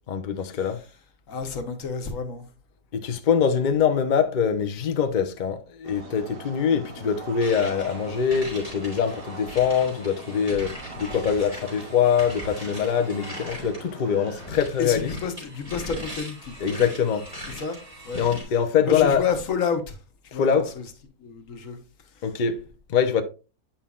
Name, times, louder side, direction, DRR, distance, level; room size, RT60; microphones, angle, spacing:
voice 1, 0.1-0.8 2.9-15.1 16.6-17.3 18.2-19.2 20.3-20.7 22.2-23.2, left 7 dB, 85° left, 0.4 m, -23 dB
voice 2, 1.3-2.5 14.8-16.9 17.5-17.8 18.0-18.2 18.8-20.0 20.2-20.8 21.2-21.8 22.1-22.2, left 6 dB, 55° left, 1.3 m, -30 dB
sound 1, 5.8-14.5, right 3 dB, 40° right, 1.1 m, -43 dB
sound 2, 7.4-13.9 14.3-18.4, equal, 20° right, 3.3 m, -40 dB
8.8 x 5.6 x 2.4 m
omnidirectional pair, 1.8 m